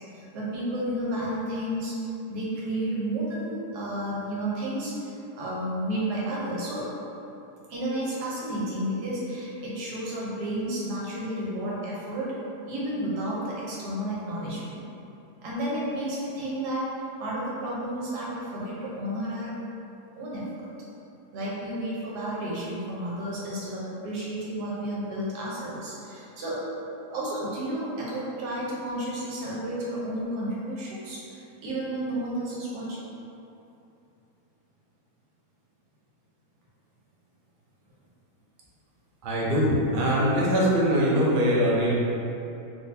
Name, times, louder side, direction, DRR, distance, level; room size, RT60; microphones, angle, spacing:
voice 1, 0.1-1.9 2.3-6.8 7.7-12.3 12.7-14.8 15.4-16.8 17.2-19.5 20.1-20.4 21.3-26.6 27.1-33.0, right 1 dB, 85° right, -6 dB, 1.4 m, -32 dB
voice 2, 39.2-41.9, equal, 70° right, -5 dB, 0.4 m, -22 dB
3.7 x 2.6 x 2.6 m, 2.8 s
omnidirectional pair, 1.7 m